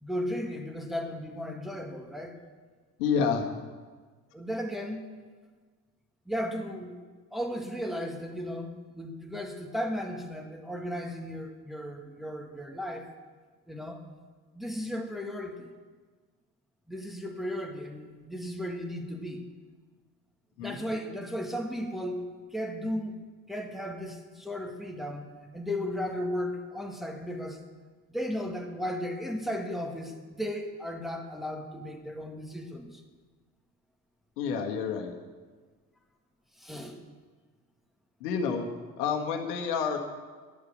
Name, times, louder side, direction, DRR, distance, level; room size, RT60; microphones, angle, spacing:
voice 1, 0.0-2.4 4.3-5.0 6.3-7.0 7.3-13.1 13.7-14.0 14.5-15.7 16.9-19.4 20.6-22.2 22.5-23.2 23.5-25.2 25.5-27.6 28.1-33.0 36.6-37.0, equal, ahead, 2 dB, 1.8 m, -35 dB
voice 2, 3.0-3.5 20.6-20.8 34.4-35.1 38.2-38.7 39.0-40.0, left 6 dB, 70° left, 4 dB, 1.7 m, -29 dB
12.5 x 10.5 x 6.4 m, 1.4 s
figure-of-eight pair, 55°, 49 cm